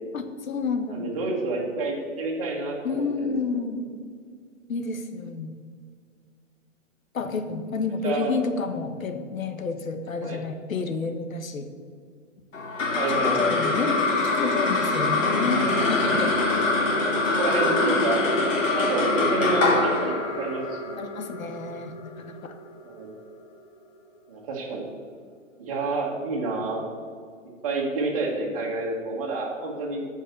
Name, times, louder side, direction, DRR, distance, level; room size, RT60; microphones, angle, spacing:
voice 1, 0.1-1.1 2.8-3.9 4.7-5.6 7.1-11.7 13.1-16.4 21.0-22.5, left 4 dB, 85° left, 8 dB, 1.5 m, -30 dB
voice 2, 0.9-3.3 8.0-8.3 10.2-10.4 12.9-13.7 15.5-15.9 16.4-18.2 18.7-21.0 22.8-23.1 24.3-24.9 25.6-26.8 27.6-30.1, right 3 dB, 25° right, -3 dB, 1.7 m, -29 dB
sound 1, 12.5-23.1, left 3 dB, 70° left, 2.6 m, -24 dB
14.0 x 5.5 x 6.6 m, 2.1 s
hypercardioid pair, 180°, 39 cm